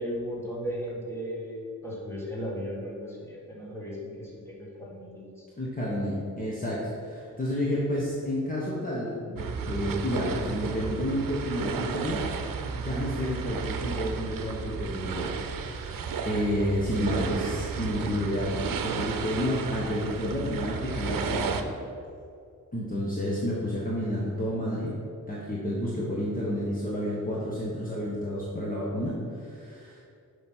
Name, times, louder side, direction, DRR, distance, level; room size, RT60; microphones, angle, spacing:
voice 1, 0.0-5.4, equal, 5° left, -5 dB, 1.7 m, -36 dB
voice 2, 5.6-12.2 12.7-18.5 18.8-21.7 22.7-25.0 25.3-30.0, equal, 25° left, -6 dB, 1.2 m, -30 dB
sound 1, 9.4-21.6, right 6 dB, 85° right, 0.7 m, -33 dB
7.6 x 5.2 x 6.1 m, 2.4 s
wide cardioid pair, 180°, 33 cm